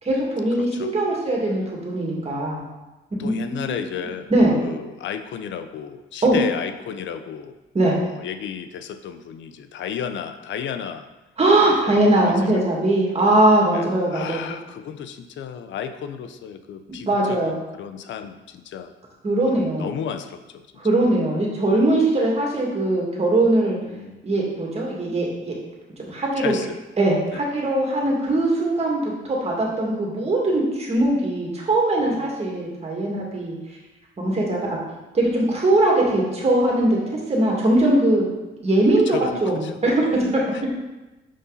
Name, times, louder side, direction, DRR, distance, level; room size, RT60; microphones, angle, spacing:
voice 1, 0.0-2.6 3.2-3.8 4.3-4.5 6.2-6.4 7.7-8.0 11.4-14.6 17.0-17.6 19.2-20.0 20.8-23.8 24.2-25.5 26.0-26.5 27.0-33.6 34.2-34.8 35.1-37.0 37.3-38.3 38.6-40.4, right 1 dB, 30° right, -3 dB, 2.2 m, -21 dB
voice 2, 0.6-0.9 1.4-1.7 3.2-4.3 4.6-7.5 8.0-11.1 11.7-12.4 13.7-18.9 19.5-20.6 23.9-24.2 26.4-26.8 27.3-27.4 32.0-32.3 39.1-39.7 40.5-40.7, left 8 dB, 70° left, 10 dB, 0.6 m, -33 dB
6.4 x 5.4 x 4.0 m, 1.1 s
cardioid pair, 90°, 20 cm